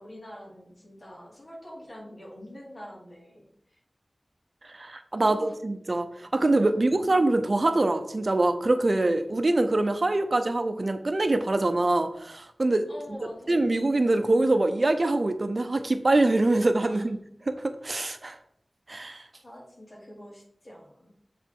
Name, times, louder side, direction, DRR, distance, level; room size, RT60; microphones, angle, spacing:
voice 1, 0.0-3.8 5.2-5.5 6.5-7.1 12.9-13.7 16.9-17.1 19.4-21.1, equal, 50° left, -3 dB, 3.2 m, -45 dB
voice 2, 4.7-12.9 13.5-17.2 17.5-18.4 18.9-19.2, right 2 dB, 55° right, 8 dB, 0.7 m, -24 dB
8.1 x 4.3 x 4.6 m, 0.68 s
wide cardioid pair, 60°, 0 cm